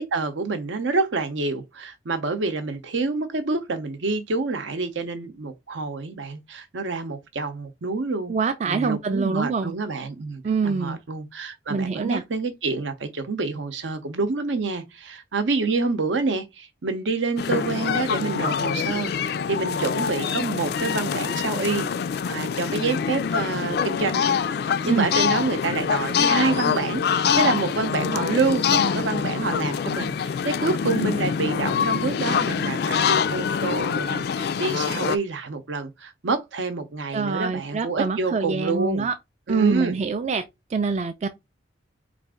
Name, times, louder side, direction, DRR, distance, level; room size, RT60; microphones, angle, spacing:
voice 1, 0.0-21.9 22.3-39.1 39.5-40.0, right 3 dB, 80° right, 0.7 m, -27 dB
voice 2, 8.3-9.7 10.4-11.0 11.7-12.2 24.9-25.1 37.1-39.1 39.5-40.4 40.7-41.3, right 4 dB, 35° right, 0.3 m, -25 dB
sound 1, 17.4-35.2, left 6 dB, 55° left, 0.3 m, -25 dB
4.0 x 2.5 x 3.6 m
head